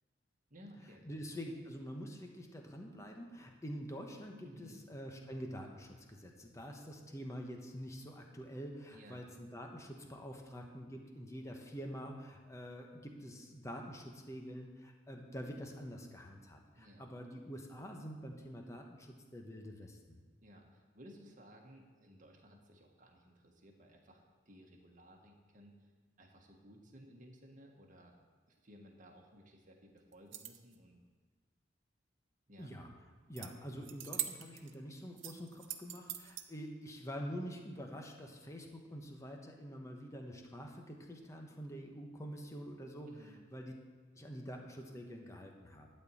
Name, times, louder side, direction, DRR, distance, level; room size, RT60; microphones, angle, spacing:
voice 1, 0.5-1.1 4.4-4.8 8.9-9.2 16.7-17.0 20.4-25.9 26.2-28.2 28.5-31.0 32.5-32.7 43.0-43.4, equal, 45° right, 1 dB, 1.5 m, -58 dB
voice 2, 1.0-20.2 32.6-32.9 33.3-43.1 43.5-43.7 44.1-45.9, equal, 15° left, 2 dB, 1.0 m, -46 dB
sound 1, 30.1-30.8 33.4-33.5 33.8-34.7 35.2-36.4, right 12 dB, 85° right, 0.7 m, -42 dB
12.0 x 4.5 x 8.4 m, 1.4 s
head